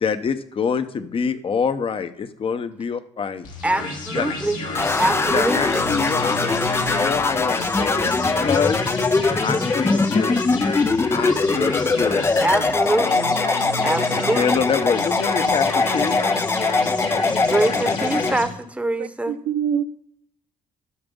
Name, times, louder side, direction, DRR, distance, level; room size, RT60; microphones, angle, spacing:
voice 1, 0.0-3.5 4.1-4.3 5.3-6.5 6.9-8.8 9.4-10.4 11.1-12.2 13.0-13.2 14.1-16.2, left 6 dB, 45° left, 0.9 m, -25 dB
sound 1, 3.4-18.4, left 2 dB, 85° left, 2.5 m, -30 dB
voice 2, 3.6-4.6 5.0-5.9 12.4-13.3 13.8-14.7 17.5-19.4, right 2 dB, 10° right, 1.0 m, -24 dB
sound 2, 4.7-18.3, left 3 dB, 20° left, 0.5 m, -22 dB
voice 3, 19.0-19.9, right 8 dB, 85° right, 0.5 m, -25 dB
12.5 x 6.0 x 5.3 m
cardioid pair, 80°, 13 cm